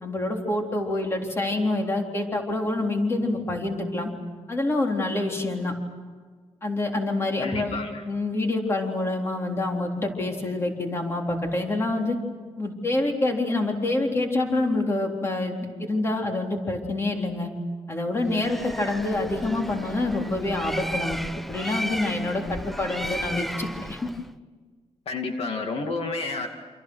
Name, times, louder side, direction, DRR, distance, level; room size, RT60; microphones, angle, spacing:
voice 1, 0.0-4.1 4.5-5.7 6.6-7.8 8.1-12.2 12.6-17.5 17.9-21.2 21.5-24.0, left 2 dB, 20° left, 2 dB, 3.7 m, -26 dB
voice 2, 7.4-8.0 25.1-26.5, left 3 dB, 60° left, 3 dB, 2.5 m, -30 dB
Bird, 18.3-24.3, equal, ahead, 0.7 m, -34 dB
29.0 x 27.0 x 6.4 m, 1.5 s
wide cardioid pair, 155°, 11 cm